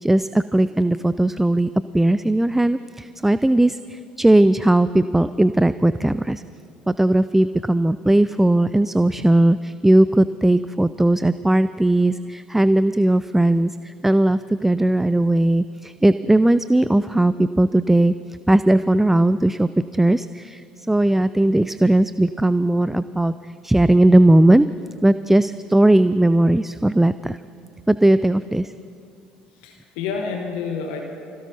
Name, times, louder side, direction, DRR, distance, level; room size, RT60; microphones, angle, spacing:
voice 1, 0.0-6.4 6.9-18.1 18.5-20.6 20.9-23.3 23.6-24.7 25.0-27.4 27.9-28.7, right 1 dB, 5° right, 14 dB, 0.3 m, -18 dB
voice 2, 29.5-31.0, left 5 dB, 70° left, 3 dB, 1.2 m, -29 dB
25.5 x 17.0 x 2.8 m, 2.4 s
hypercardioid pair, 60°, 4 cm